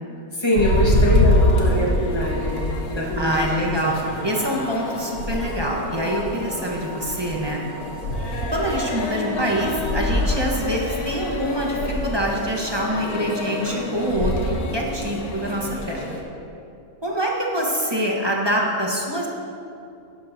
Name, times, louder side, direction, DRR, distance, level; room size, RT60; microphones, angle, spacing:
voice 1, 0.3-3.9, equal, 20° left, -3 dB, 1.4 m, -24 dB
sound 1, 0.5-16.2, left 1 dB, 75° left, 1.6 m, -25 dB
sound 2, 2.2-2.7 3.2-5.4 5.9-9.1, right 4 dB, 50° right, 0.8 m, -42 dB
voice 2, 3.2-4.0 4.2-7.6 8.5-16.2 17.0-19.3, right 1 dB, 20° right, -2 dB, 1.0 m, -25 dB
12.0 x 10.5 x 2.7 m, 2.7 s
omnidirectional pair, 1.6 m